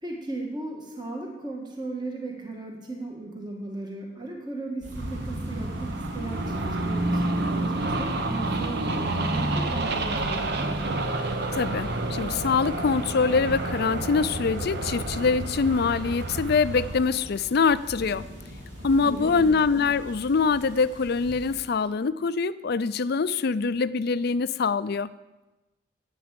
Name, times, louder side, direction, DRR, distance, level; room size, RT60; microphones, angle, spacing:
voice 1, 0.0-10.7 19.0-19.5, right 2 dB, 25° right, 0 dB, 1.6 m, -36 dB
sound 1, 4.8-21.6, equal, 80° right, 3.4 m, -43 dB
sound 2, 4.9-17.0, right 2 dB, 60° right, 1.1 m, -29 dB
voice 2, 11.5-18.2 18.8-25.1, left 5 dB, 60° left, 15 dB, 0.5 m, -24 dB
10.5 x 8.8 x 7.5 m, 1.1 s
head